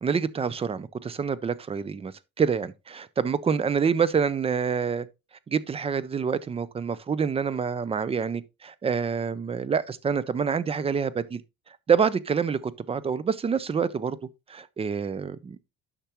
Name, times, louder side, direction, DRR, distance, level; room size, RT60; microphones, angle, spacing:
voice 1, 0.0-2.1 2.4-5.1 5.5-11.4 11.9-14.2 14.5-15.6, right 6 dB, 20° right, 0.4 m, -27 dB
10.0 x 5.9 x 2.9 m
cardioid pair, 160°, 34 cm